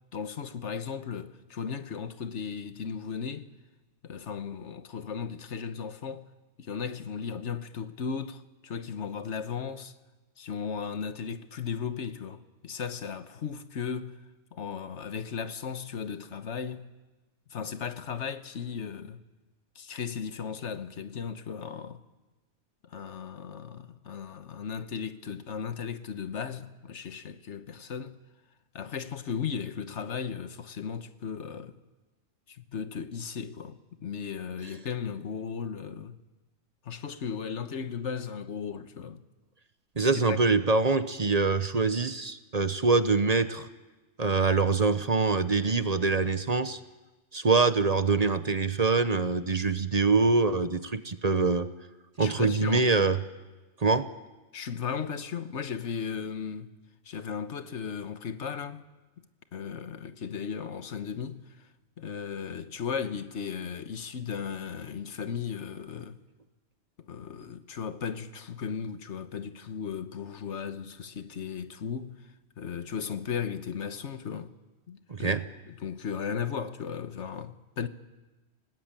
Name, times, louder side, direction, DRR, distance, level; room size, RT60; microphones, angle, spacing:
voice 1, 0.1-3.5 4.0-6.3 6.6-9.9 10.4-14.2 14.5-16.9 17.5-19.2 19.7-22.0 22.8-28.1 28.7-31.8 32.5-36.2 36.8-39.2 40.0-40.4 52.2-52.9 54.5-56.7 57.0-58.9 59.5-61.7 62.0-66.2 67.1-74.5 74.9-77.9, left 6 dB, 80° left, 1.4 m, -36 dB
voice 2, 40.0-43.7 44.2-46.8 47.3-51.7 52.2-53.2 53.8-54.1 75.1-75.5, right 4 dB, 35° right, 0.9 m, -24 dB
28.0 x 18.5 x 8.9 m
omnidirectional pair, 1.2 m